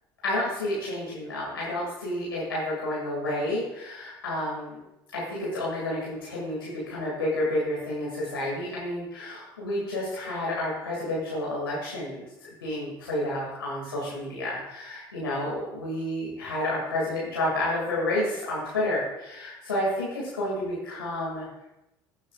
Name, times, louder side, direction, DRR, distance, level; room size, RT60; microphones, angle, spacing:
voice 1, 0.2-4.8 5.1-21.5, left 1 dB, 90° left, -7 dB, 2.6 m, -30 dB
15.5 x 7.4 x 2.5 m, 0.95 s
hypercardioid pair, 65°, 12 cm